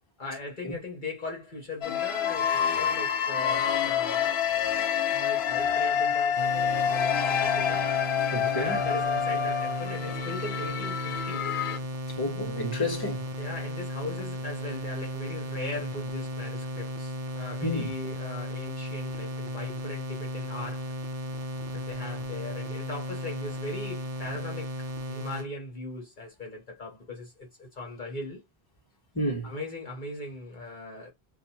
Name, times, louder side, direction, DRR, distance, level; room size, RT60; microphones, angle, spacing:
voice 1, 0.2-4.4 5.1-7.9 8.5-11.5 13.4-20.9 21.7-28.4 29.4-31.1, left 2 dB, 50° left, 1.2 m, -39 dB
sound 1, 1.8-11.8, left 8 dB, 85° left, 0.8 m, -27 dB
sound 2, 6.4-25.5, left 1 dB, 55° right, 0.8 m, -35 dB
voice 2, 8.3-8.8 12.2-13.2 17.6-17.9 29.1-29.5, left 1 dB, 20° left, 1.2 m, -30 dB
2.7 x 2.4 x 4.1 m
omnidirectional pair, 1.0 m